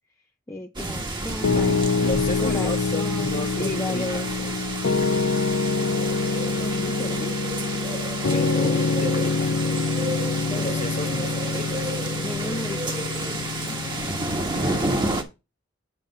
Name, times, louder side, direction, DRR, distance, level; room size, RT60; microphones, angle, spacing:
voice 1, 0.5-1.8 2.4-4.3 6.6-7.3 10.4-10.8 12.2-13.5, left 1 dB, 15° left, 0.6 m, -34 dB
sound 1, 0.8-15.2, right 2 dB, 25° right, 1.3 m, -30 dB
Piano, 1.4-14.8, left 4 dB, 85° left, 0.5 m, -26 dB
voice 2, 1.5-4.6 8.3-9.6 10.5-11.9 13.5-15.1, left 1 dB, 40° left, 1.6 m, -34 dB
8.4 x 3.4 x 6.6 m
head